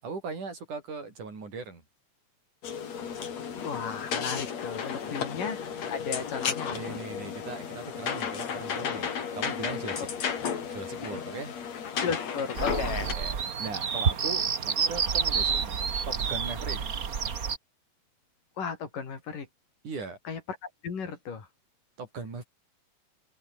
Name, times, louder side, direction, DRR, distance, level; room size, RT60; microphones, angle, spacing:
voice 1, 0.0-1.8 5.0-5.2 6.7-10.1 10.7-11.6 13.1-17.0 19.8-20.2 22.0-22.4, right 4 dB, 65° right, 7.7 m, -39 dB
sound 1, 2.6-13.1, left 7 dB, 55° left, 3.7 m, -33 dB
voice 2, 3.6-5.6 5.9-6.9 10.0-10.1 12.0-13.2 18.6-19.5 20.3-21.5, left 6 dB, 75° left, 5.9 m, -35 dB
sound 2, 12.6-17.6, right 6 dB, 40° right, 1.3 m, -29 dB
omnidirectional pair, 3.8 m